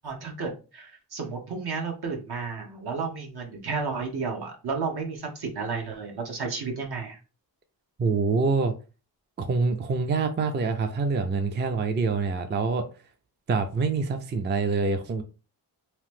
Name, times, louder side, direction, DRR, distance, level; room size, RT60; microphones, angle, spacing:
voice 1, 0.0-7.2, right 4 dB, 70° right, 1.0 m, -32 dB
voice 2, 8.0-8.7 9.4-12.8 13.5-15.2, right 4 dB, 30° right, 0.4 m, -25 dB
2.9 x 2.0 x 3.2 m
wide cardioid pair, 90°, 41 cm